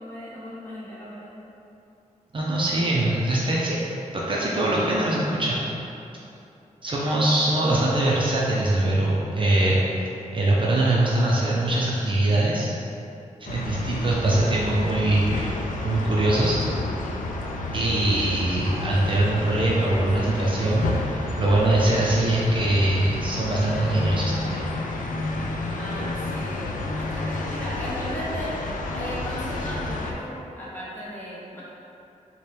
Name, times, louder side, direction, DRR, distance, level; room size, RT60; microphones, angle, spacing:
voice 1, 0.0-1.4 25.7-28.7 28.9-31.6, equal, 15° left, -9 dB, 1.0 m, -36 dB
voice 2, 2.3-3.8 4.3-5.6 6.8-12.7 13.4-16.6 17.7-24.6, right 1 dB, 40° right, -5 dB, 0.4 m, -22 dB
sound 1, 13.5-30.1, left 2 dB, 80° left, 0.4 m, -30 dB
4.1 x 2.2 x 3.3 m, 2.8 s
wide cardioid pair, 110°, 13 cm